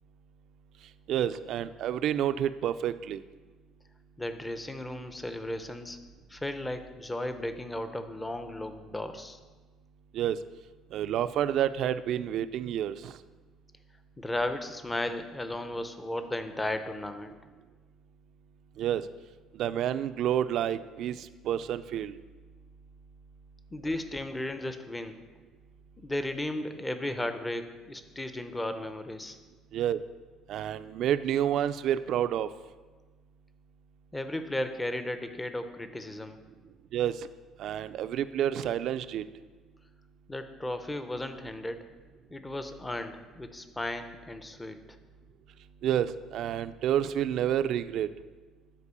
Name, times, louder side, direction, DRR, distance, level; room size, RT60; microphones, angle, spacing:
voice 1, 1.1-3.2 10.1-10.4 10.9-13.2 18.8-19.1 19.5-22.2 29.7-30.0 30.5-32.5 36.9-37.3 37.6-39.2 45.8-48.1, right 10 dB, 55° right, 12 dB, 0.4 m, -29 dB
voice 2, 4.2-6.0 6.3-9.4 14.2-17.3 23.7-25.2 26.0-29.4 34.1-36.4 40.3-41.9 42.3-44.8, left 1 dB, 10° left, 9 dB, 0.6 m, -35 dB
9.9 x 4.4 x 6.8 m, 1.3 s
cardioid pair, 140°, 0 cm